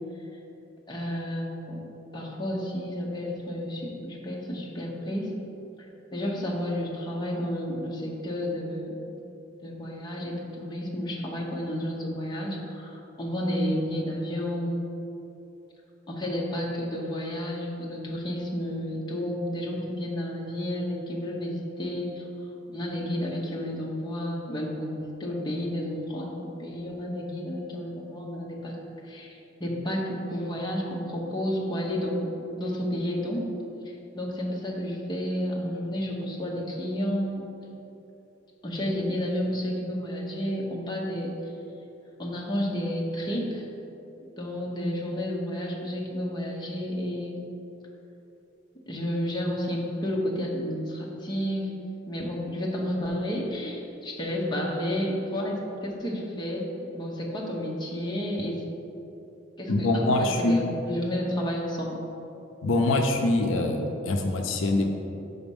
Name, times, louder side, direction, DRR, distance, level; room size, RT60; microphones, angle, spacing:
voice 1, 0.9-1.9 2.1-5.3 6.1-9.1 9.6-14.9 16.1-22.3 22.7-28.8 29.0-32.3 32.6-33.5 34.1-37.5 38.6-41.3 42.2-43.7 44.4-47.5 48.9-51.7 52.1-56.7 56.9-58.6 59.6-62.0, equal, 20° left, -3 dB, 0.8 m, -31 dB
voice 2, 59.7-60.6 62.6-64.9, left 2 dB, 80° left, 3 dB, 0.5 m, -24 dB
5.9 x 4.1 x 5.3 m, 2.9 s
head